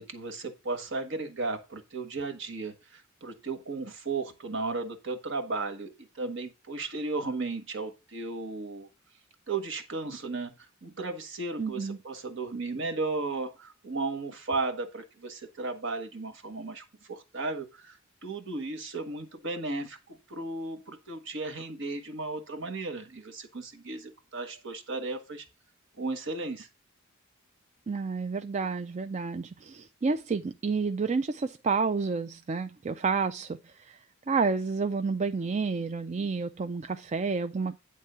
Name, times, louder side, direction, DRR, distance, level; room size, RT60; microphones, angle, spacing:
voice 1, 0.0-8.9 9.5-25.4 26.0-26.7, right 3 dB, 65° right, 1.6 m, -35 dB
voice 2, 11.6-12.0 27.9-34.0 34.3-37.8, right 4 dB, 35° right, 0.4 m, -30 dB
9.6 x 3.7 x 6.7 m
head